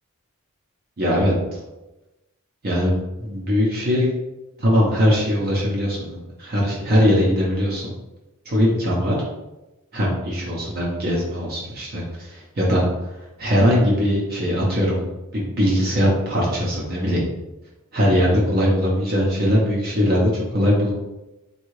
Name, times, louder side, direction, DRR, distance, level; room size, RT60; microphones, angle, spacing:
voice 1, 1.0-1.6 2.6-4.1 4.6-7.9 8.5-9.2 9.9-12.8 13.4-15.0 15.3-17.2 17.9-20.9, equal, 45° right, -4 dB, 0.7 m, -20 dB
3.6 x 2.4 x 3.1 m, 1.0 s
head